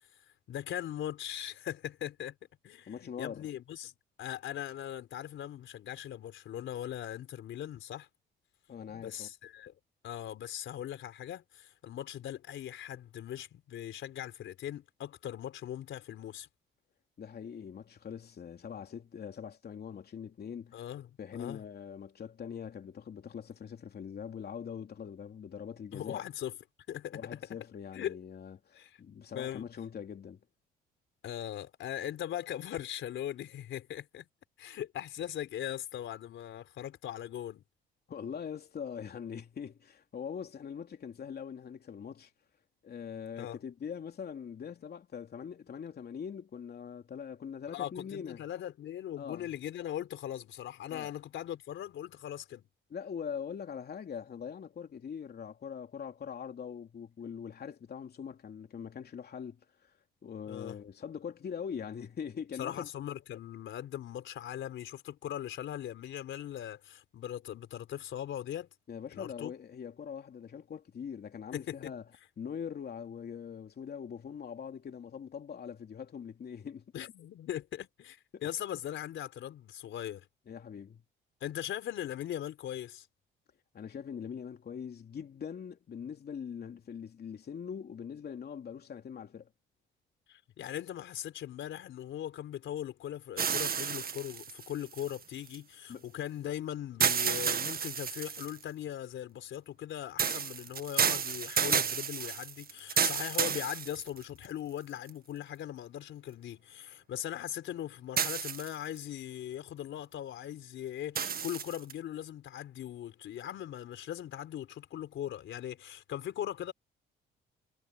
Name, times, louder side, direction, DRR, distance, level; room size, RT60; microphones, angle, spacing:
voice 1, 0.5-2.4 2.6-3.9 4.2-8.1 8.9-9.7 10.0-16.5 20.7-21.6 25.9-26.6 26.9-27.4 27.9-28.2 28.7-29.0 29.3-29.7 31.2-34.3 34.6-37.6 43.4-43.6 47.7-52.6 60.5-60.8 62.6-68.7 69.1-69.5 71.5-71.9 76.9-80.3 81.4-83.1 90.3-116.7, left 11 dB, 70° left, 4.2 m, -40 dB
voice 2, 2.9-3.5 8.7-9.3 17.2-20.8 21.2-26.2 27.1-30.4 38.1-42.3 42.8-48.4 49.2-49.5 50.9-51.1 52.9-59.9 60.2-62.9 68.9-72.0 72.4-76.9 78.3-78.5 80.5-81.0 83.7-89.5 95.9-96.1, left 7 dB, 50° left, 3.1 m, -42 dB
sound 1, 93.4-95.5 97.0-98.6 100.2-104.5 105.1-105.2 108.2-109.0 111.1-111.9, right 7 dB, 45° right, 1.8 m, -31 dB
supercardioid pair, 70°, 20 cm